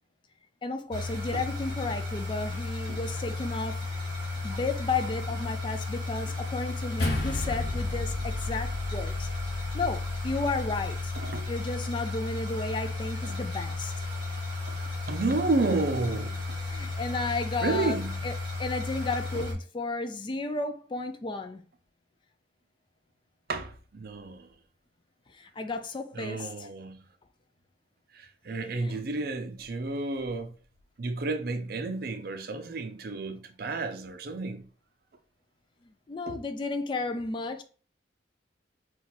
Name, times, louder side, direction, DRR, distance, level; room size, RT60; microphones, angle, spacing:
voice 1, 0.6-3.9 4.4-9.3 9.7-11.1 11.5-14.1 16.6-18.3 18.6-21.6 25.3-26.7 28.7-29.0 36.1-37.6, left 3 dB, 25° left, 0.3 m, -33 dB
sound 1, 0.9-19.5, left 3 dB, 25° right, 1.6 m, -34 dB
sound 2, 7.0-11.5, left 2 dB, 55° left, 0.8 m, -34 dB
voice 2, 11.2-11.5 13.2-13.4 14.7-14.8 15.1-16.4 17.6-18.2 23.5-24.5 26.2-27.0 28.1-30.5 31.0-34.6 36.3-36.4, right 3 dB, 55° right, 0.5 m, -31 dB
4.0 x 2.3 x 4.2 m
head